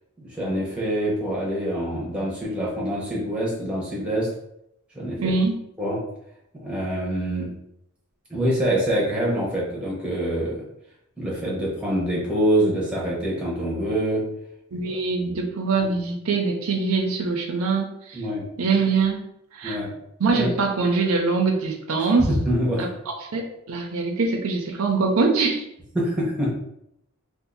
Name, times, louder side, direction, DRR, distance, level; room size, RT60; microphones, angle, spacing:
voice 1, 0.2-4.3 4.9-5.3 5.8-6.0 6.5-7.5 8.3-10.6 11.2-14.2 14.9-15.0 15.3-15.4 18.1-18.4 19.6-19.9 20.3-20.5 22.2-22.8 25.9-26.5, right 1 dB, 5° right, -5 dB, 1.0 m, -25 dB
voice 2, 5.2-5.6 14.7-18.2 18.6-19.2 19.5-19.8 20.2-22.3 22.8-25.6, right 4 dB, 80° right, 1 dB, 0.5 m, -23 dB
2.7 x 2.5 x 3.8 m, 0.79 s
head